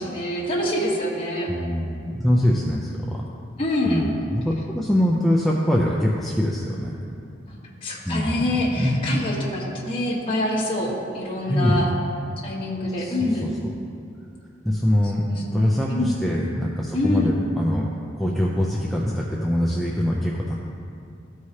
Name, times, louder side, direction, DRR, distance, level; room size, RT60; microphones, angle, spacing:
voice 1, 0.0-1.5 3.6-4.0 7.5-11.9 12.4-13.5 15.2-16.1 16.9-17.3, left 1 dB, 30° left, -7 dB, 1.3 m, -26 dB
voice 2, 1.5-3.2 3.9-6.9 8.1-9.3 11.4-11.8 13.0-13.5 14.6-15.2 15.5-17.9 18.1-20.5, equal, ahead, -4 dB, 0.5 m, -23 dB
14.0 x 4.7 x 2.8 m, 2.6 s
head